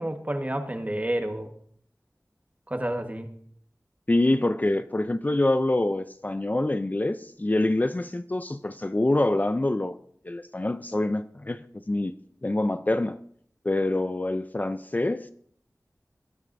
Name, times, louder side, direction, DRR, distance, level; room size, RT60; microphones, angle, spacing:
voice 1, 0.0-1.5 2.7-3.3, right 1 dB, 25° right, 5 dB, 1.4 m, -29 dB
voice 2, 4.1-10.0 10.2-12.1 12.4-13.2 13.6-15.3, left 2 dB, 30° left, 11 dB, 0.4 m, -25 dB
20.0 x 9.6 x 2.6 m, 0.64 s
wide cardioid pair, 60°, 6 cm